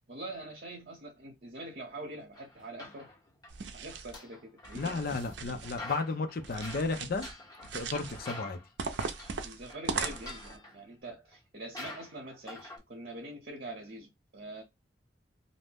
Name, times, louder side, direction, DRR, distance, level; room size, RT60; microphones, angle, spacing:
voice 1, 0.1-3.1 3.7-4.4 4.7-5.0 9.4-14.6, right 2 dB, 55° right, 0.8 m, -44 dB
sound 1, 2.3-3.5 3.9-5.4 5.6-8.7 8.9-9.4 9.7-10.8 11.3-11.4 11.7-12.8, left 2 dB, 25° left, 1.0 m, -46 dB
sound 2, 3.5-4.2 4.6-5.8 6.4-7.3 7.6-8.2 8.8-10.6, right 5 dB, 80° right, 0.5 m, -38 dB
voice 2, 4.7-7.3 7.7-8.6, left 3 dB, 55° left, 0.6 m, -33 dB
2.7 x 2.1 x 3.3 m
head